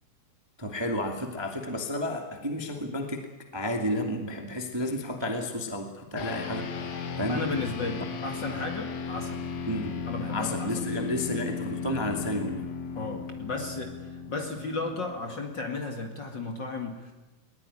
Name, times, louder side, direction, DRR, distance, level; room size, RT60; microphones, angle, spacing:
voice 1, 0.6-3.3 3.5-6.7 7.2-7.4 9.7-10.0 10.3-12.7, left 1 dB, 10° right, 3 dB, 1.6 m, -31 dB
sound 1, 6.2-15.8, left 5 dB, 55° left, 2.8 m, -36 dB
voice 2, 7.3-9.5 10.1-11.1 12.9-17.1, left 3 dB, 35° left, 3 dB, 2.2 m, -34 dB
21.0 x 19.5 x 9.9 m, 1.1 s
omnidirectional pair, 4.0 m